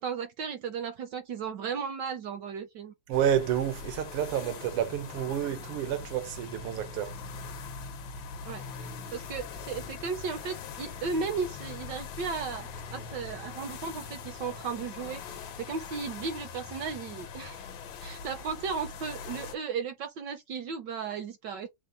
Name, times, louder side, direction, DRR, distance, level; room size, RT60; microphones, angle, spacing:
voice 1, 0.0-2.9 8.4-17.7 18.0-21.7, right 5 dB, 70° right, 1.1 m, -35 dB
sound 1, 3.1-19.6, left 5 dB, 70° left, 1.5 m, -42 dB
voice 2, 3.1-7.2, right 10 dB, 90° right, 1.7 m, -29 dB
5.3 x 2.1 x 3.8 m
omnidirectional pair, 2.4 m